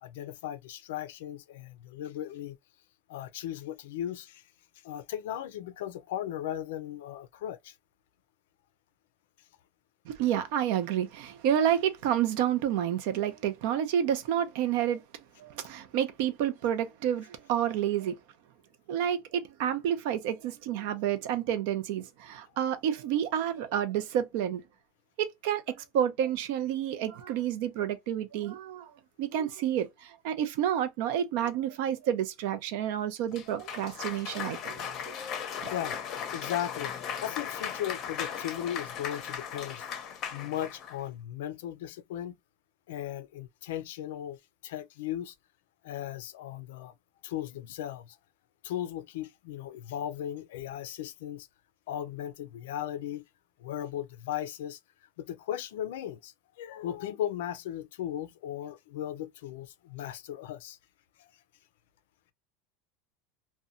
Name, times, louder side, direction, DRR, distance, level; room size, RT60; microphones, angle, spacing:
voice 1, 0.0-2.6 3.1-4.5 4.8-7.7 35.7-36.0 36.3-36.9 37.2-39.8 40.3-42.3 42.9-44.4 44.6-45.3 45.8-46.9 47.2-48.2 48.6-51.5 51.9-53.2 53.6-54.8 55.2-60.8 61.2-61.3, left 11 dB, 85° left, 0.4 m, -37 dB
voice 2, 10.1-15.0 15.4-18.2 18.9-24.6 25.2-28.9 29.2-35.1 35.6-35.7, right 10 dB, 60° right, 0.5 m, -29 dB
Cheering / Applause, 33.3-41.0, left 8 dB, 35° left, 0.6 m, -37 dB
2.7 x 2.1 x 2.4 m
supercardioid pair, 165°, 0 cm